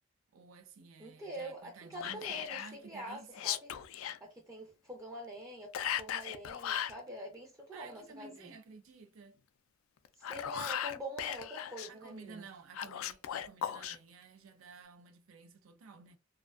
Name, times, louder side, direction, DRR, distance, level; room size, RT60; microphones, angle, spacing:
voice 1, 0.3-3.5 7.7-9.4 11.9-16.2, right 4 dB, 90° right, 0.4 m, -53 dB
voice 2, 1.0-3.7 4.2-8.5 10.2-12.4, right 1 dB, 15° right, 0.4 m, -45 dB
Whispering, 2.0-2.7 3.3-4.2 5.7-7.0 10.0-11.9 12.7-14.0, left 10 dB, 85° left, 0.3 m, -37 dB
2.5 x 2.1 x 2.3 m
head